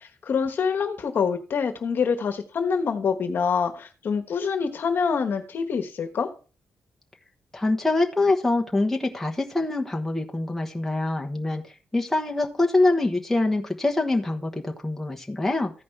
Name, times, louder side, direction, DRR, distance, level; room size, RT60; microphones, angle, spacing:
voice 1, 0.0-6.3, left 6 dB, 55° left, 7 dB, 1.2 m, -26 dB
voice 2, 7.5-11.6 11.9-15.7, left 2 dB, 5° left, 1 dB, 1.0 m, -24 dB
14.5 x 5.2 x 3.3 m, 0.35 s
cardioid pair, 125°, 4 cm